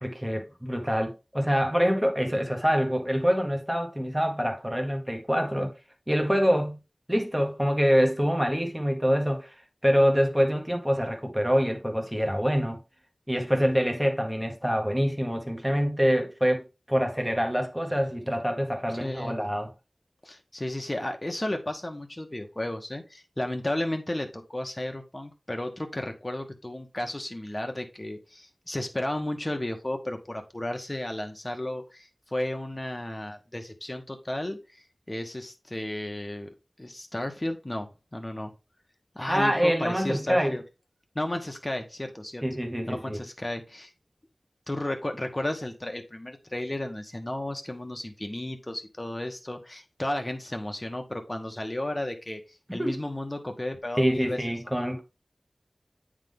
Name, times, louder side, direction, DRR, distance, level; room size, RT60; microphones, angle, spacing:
voice 1, 0.0-5.7 6.1-6.8 7.1-9.5 9.8-12.8 13.3-19.7 39.3-40.6 42.4-43.2 52.7-53.0 54.0-55.0, equal, 5° right, 1.4 m, -25 dB
voice 2, 19.0-19.4 20.2-36.5 36.8-38.5 39.1-40.6 41.1-42.4 42.9-43.9 44.7-52.4 52.7-54.4, left 1 dB, 30° left, 1.3 m, -33 dB
9.0 x 3.8 x 3.6 m
wide cardioid pair, 60°, 0 cm